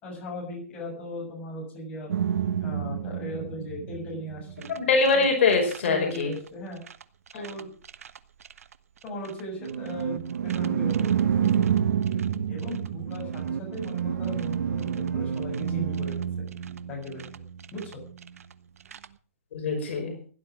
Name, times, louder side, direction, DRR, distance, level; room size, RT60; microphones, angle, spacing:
voice 1, 0.0-2.1 2.5-4.7 5.1-5.3 5.8-6.8 7.3-7.7 9.0-11.1 11.4-11.7 12.5-16.1 16.9-17.2 17.7-18.0, left 1 dB, 15° left, -3 dB, 7.1 m, -38 dB
sound 1, 2.1-5.2 5.5-6.5 6.9-7.0 7.3-8.2 8.4-8.7 9.2-18.5 18.9-19.1, right 8 dB, 85° right, 1.3 m, -29 dB
voice 2, 4.7-6.3 7.3-7.4 19.5-20.2, left 4 dB, 55° left, 2 dB, 5.2 m, -23 dB
16.5 x 11.0 x 6.4 m, 0.42 s
hypercardioid pair, 175°, 8 cm